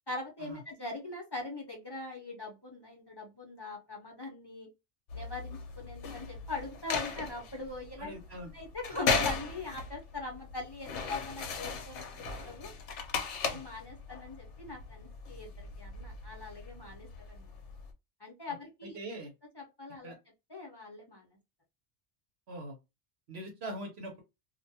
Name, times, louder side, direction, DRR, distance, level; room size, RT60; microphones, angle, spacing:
voice 1, 0.1-4.7 5.1-8.2 8.5-12.7 13.4-17.6 18.2-19.0 19.5-20.1 20.5-21.3, left 3 dB, 25° left, -1 dB, 0.7 m, -42 dB
sound 1, 5.1-17.9, left 5 dB, 85° left, 1.0 m, -37 dB
voice 2, 8.0-8.5 13.5-13.6 18.9-19.3 20.0-20.2 22.5-22.8 23.3-24.2, right 1 dB, 65° right, 2 dB, 1.0 m, -42 dB
2.4 x 2.2 x 2.6 m, 0.24 s
omnidirectional pair, 1.2 m